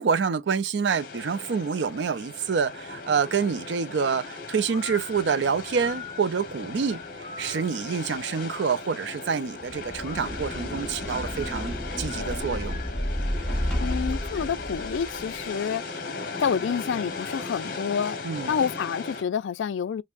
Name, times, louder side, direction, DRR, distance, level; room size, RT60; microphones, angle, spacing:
voice 1, 0.0-7.0 7.4-12.8 18.2-18.5, right 6 dB, 75° right, 0.4 m, -27 dB
sound 1, 0.9-19.2, left 4 dB, 50° left, 1.1 m, -37 dB
sound 2, 4.7-8.0 10.0-13.1, left 6 dB, 30° left, 0.6 m, -43 dB
sound 3, 9.6-15.3, equal, 5° left, 0.9 m, -31 dB
voice 2, 13.8-15.8 16.4-18.2 18.5-20.0, left 7 dB, 85° left, 0.4 m, -28 dB
5.4 x 2.0 x 2.4 m
head